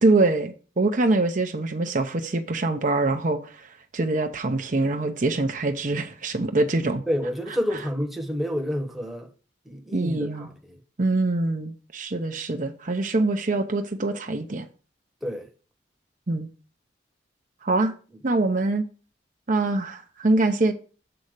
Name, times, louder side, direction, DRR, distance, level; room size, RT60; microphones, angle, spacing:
voice 1, 0.0-7.0 9.9-10.5 11.0-14.7 16.3-16.5 17.6-17.9 18.2-18.8 19.5-20.7, right 2 dB, 45° right, 0.7 m, -24 dB
voice 2, 7.1-9.3 9.7-10.8 15.2-15.5, equal, ahead, 1.0 m, -29 dB
7.8 x 4.2 x 6.5 m
head